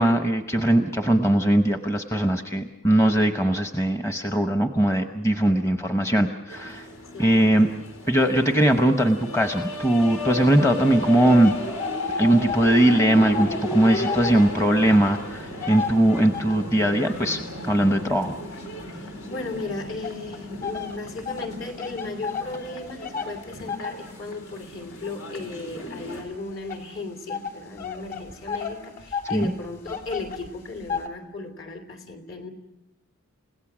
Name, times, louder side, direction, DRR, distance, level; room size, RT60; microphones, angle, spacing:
voice 1, 0.0-6.9 7.2-7.7 8.1-11.5 12.2-18.3 29.3-29.5, right 1 dB, 15° left, 6 dB, 0.9 m, -20 dB
sound 1, 6.5-26.2, left 1 dB, 80° left, 4.3 m, -35 dB
voice 2, 7.1-7.8 14.1-14.7 18.9-32.5, left 3 dB, 60° left, 6 dB, 3.1 m, -36 dB
sound 2, 11.2-12.8 13.1-16.8 17.3-19.4 20.0-31.1, left 6 dB, 45° left, 3.1 m, -35 dB
30.0 x 17.0 x 6.2 m, 0.90 s
head